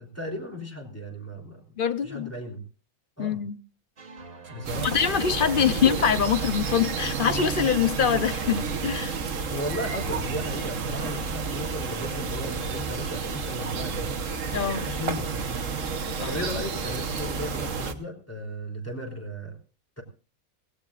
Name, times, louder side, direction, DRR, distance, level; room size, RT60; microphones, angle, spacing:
voice 1, 0.0-1.8 2.0-2.6 3.2-3.4 4.5-4.9 5.6-6.0 9.5-14.1 14.9-15.7 16.2-19.6 20.0-20.1, equal, 10° left, 3.4 m, -35 dB
voice 2, 1.8-2.3 3.2-3.6 4.8-9.2 14.5-14.9 16.2-16.6, left 8 dB, 45° left, 0.8 m, -24 dB
sound 1, 4.0-12.3, right 4 dB, 85° right, 2.5 m, -42 dB
sound 2, 4.6-17.9, right 5 dB, 65° right, 1.5 m, -31 dB
18.0 x 16.5 x 2.5 m
omnidirectional pair, 1.5 m